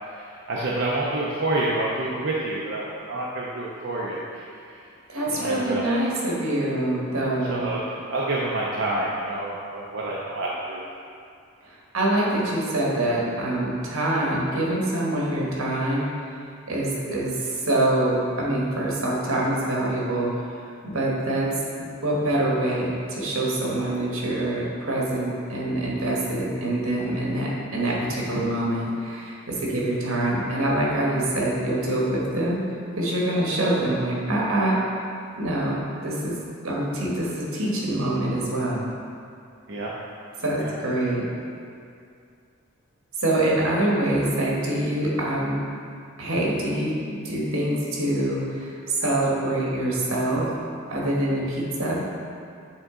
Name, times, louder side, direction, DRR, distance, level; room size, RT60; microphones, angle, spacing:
voice 1, 0.0-4.8 5.3-6.0 7.5-10.8 39.7-39.9 40.6-40.7, right 2 dB, 55° right, -5 dB, 0.6 m, -28 dB
voice 2, 5.1-7.7 11.6-16.0 16.7-20.3 20.8-21.5 21.8-32.6 33.0-34.8 35.4-36.4 36.6-38.9 40.4-41.3 43.2-45.6 46.2-50.5 50.9-52.0, right 1 dB, 85° right, -4 dB, 1.3 m, -25 dB
7.9 x 3.6 x 3.7 m, 2.4 s
head